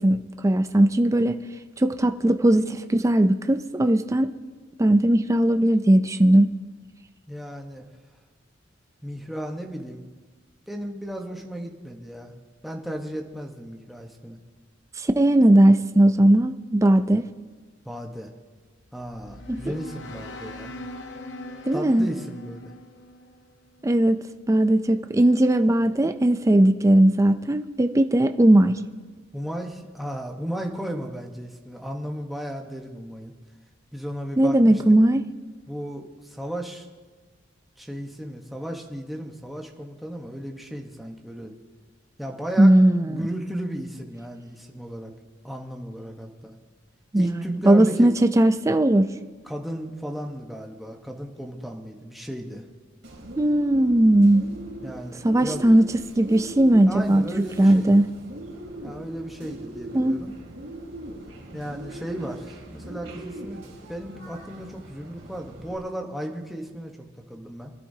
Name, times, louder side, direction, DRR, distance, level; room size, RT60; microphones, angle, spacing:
voice 1, 0.0-1.4 1.8-4.3 4.8-6.5 15.0-17.3 19.5-19.7 21.7-22.1 23.8-28.8 34.4-35.3 42.6-43.2 47.1-49.1 53.4-54.4 55.2-57.2 57.6-58.1 59.9-60.2, right 1 dB, 15° right, 8 dB, 0.4 m, -18 dB
voice 2, 7.3-7.9 9.0-10.1 10.7-12.3 12.6-14.4 17.8-18.3 18.9-20.7 21.7-22.7 29.3-33.3 33.9-34.8 35.7-36.9 37.8-41.5 42.2-42.7 43.0-45.1 45.4-46.6 47.1-48.1 49.4-52.7 54.8-55.6 56.9-57.9 58.8-60.4 61.5-67.7, equal, ahead, 1 dB, 1.1 m, -35 dB
sound 1, 18.7-24.0, left 1 dB, 65° left, 0.8 m, -41 dB
Bird, 53.0-65.8, right 1 dB, 80° right, 2.7 m, -40 dB
24.5 x 12.0 x 2.8 m, 1.4 s
head